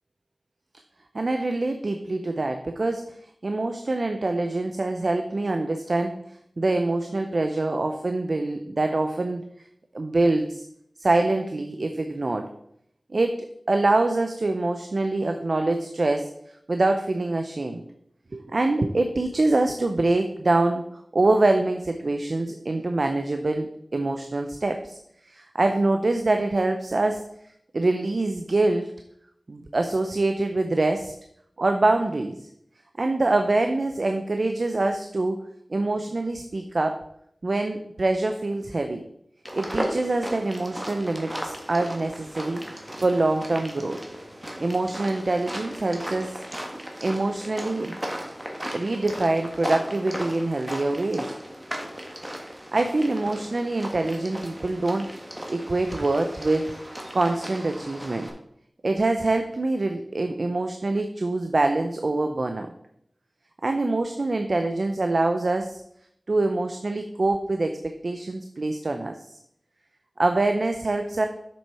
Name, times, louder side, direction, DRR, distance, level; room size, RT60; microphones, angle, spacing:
voice 1, 1.1-3.1 3.4-6.2 6.6-9.4 9.9-10.6 11.0-12.5 13.1-16.3 16.7-17.8 18.3-20.8 21.1-25.0 25.3-27.2 27.7-28.9 29.5-31.1 31.6-32.4 33.0-35.4 35.7-37.0 37.4-39.0 39.5-42.6 43.0-44.0 44.6-46.4 47.0-48.0 48.7-51.3 52.7-55.1 55.5-56.7 57.1-58.3 58.8-62.7 63.6-65.8 66.3-69.2 70.2-71.3, right 2 dB, 60° right, 6 dB, 0.6 m, -25 dB
sound 1, 39.4-58.3, equal, 15° right, 1.6 m, -36 dB
7.1 x 6.2 x 4.7 m, 0.73 s
wide cardioid pair, 65°, 0 cm